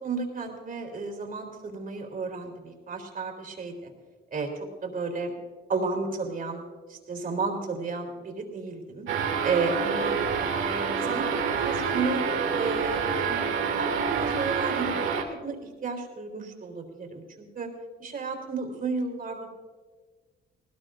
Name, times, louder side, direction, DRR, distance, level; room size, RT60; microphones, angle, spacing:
voice 1, 0.0-3.9 4.3-4.5 4.8-5.3 5.7-6.6 6.9-9.1 9.4-12.2 12.5-13.4 13.8-17.7 18.0-19.5, right 4 dB, 45° right, 2 dB, 3.4 m, -32 dB
sound 1, 9.1-15.2, right 6 dB, 75° right, 2.7 m, -27 dB
19.5 x 18.5 x 2.6 m, 1.4 s
cardioid pair, 90°, 20 cm